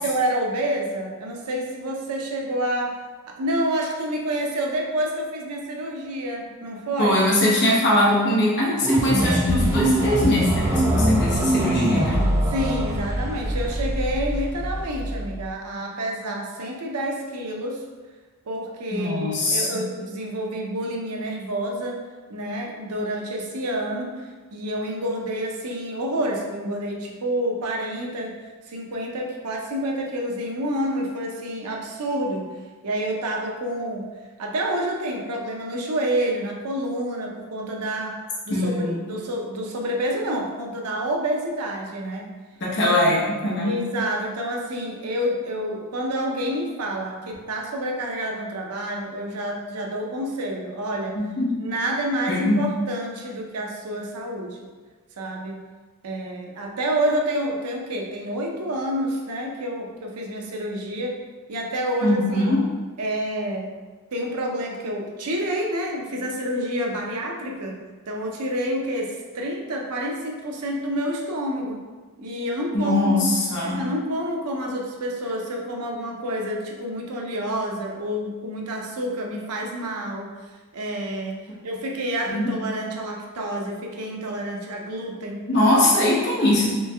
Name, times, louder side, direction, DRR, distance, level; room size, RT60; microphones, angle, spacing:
voice 1, 0.0-3.0 3.3-7.2 12.5-17.8 18.5-22.0 22.3-24.2 24.5-28.3 28.7-32.5 32.8-34.0 34.4-38.2 38.5-42.3 42.8-43.1 43.6-51.2 51.6-54.6 55.2-55.6 56.0-61.2 61.5-62.4 63.0-63.8 64.1-71.8 72.2-73.2 73.6-80.3 80.7-85.4, right 1 dB, 90° right, 0 dB, 0.6 m, -28 dB
voice 2, 7.0-12.3 18.9-19.9 38.5-39.1 42.6-43.8 51.1-51.6 52.3-52.6 62.0-62.6 72.7-73.8 81.5-81.6 82.3-82.5 85.5-86.7, left 1 dB, 50° left, -5 dB, 1.0 m, -22 dB
sound 1, 8.8-15.5, right 1 dB, 15° right, 0.4 m, -23 dB
3.2 x 3.1 x 3.3 m, 1.4 s
head